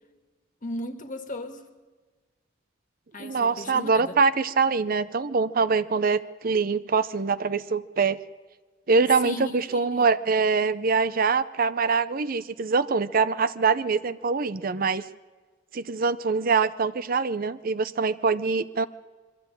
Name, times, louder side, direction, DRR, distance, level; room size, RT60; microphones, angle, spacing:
voice 1, 0.6-1.6 3.1-4.2 9.2-10.1, left 1 dB, 40° left, 7 dB, 1.8 m, -36 dB
voice 2, 3.2-8.2 8.9-15.0 15.7-18.8, right 4 dB, 45° right, 14 dB, 0.6 m, -24 dB
22.5 x 14.0 x 9.0 m, 1.4 s
head